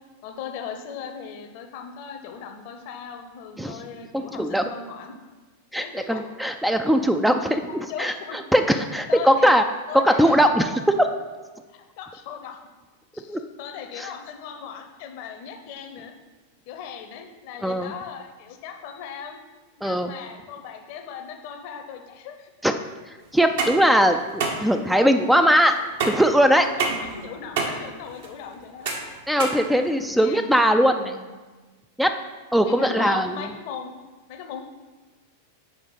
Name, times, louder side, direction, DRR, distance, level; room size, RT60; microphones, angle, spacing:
voice 1, 0.2-5.2 5.8-6.2 7.9-8.4 9.1-9.5 9.9-10.4 11.7-12.6 13.1-16.1 16.7-19.4 19.8-22.5 26.5-28.9 29.7-30.5 31.0-31.3 32.6-33.9 34.3-34.6, left 7 dB, 45° left, 5 dB, 0.7 m, -38 dB
voice 2, 4.1-4.6 5.7-7.7 8.0-8.1 8.5-9.6 10.0-11.1 13.3-13.4 14.0-14.1 17.6-17.9 19.8-20.1 22.6-22.8 23.3-25.7 26.0-26.7 29.3-31.1 32.0-32.1 32.5-33.4, equal, ahead, 6 dB, 0.3 m, -20 dB
sound 1, 23.3-30.3, right 4 dB, 55° right, 1.1 m, -30 dB
7.1 x 4.8 x 3.9 m, 1.3 s
figure-of-eight pair, 90°, 0 cm